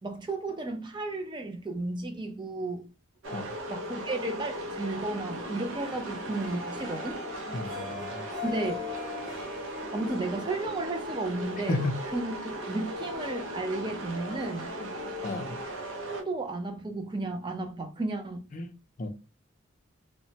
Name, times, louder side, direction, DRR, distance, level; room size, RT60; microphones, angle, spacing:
voice 1, 0.0-2.9 3.7-7.2 8.4-8.8 9.9-14.8 16.1-18.4, right 2 dB, 20° right, 0.4 m, -33 dB
sound 1, 3.2-16.2, right 1 dB, 75° right, 0.6 m, -37 dB
Harp, 5.8-12.0, left 6 dB, 40° right, 0.9 m, -43 dB
voice 2, 7.5-8.3 11.7-12.0 14.8-14.9 15.2-15.6 18.5-18.7 19.0-19.1, left 2 dB, 40° left, 0.4 m, -33 dB
2.9 x 2.1 x 2.7 m
head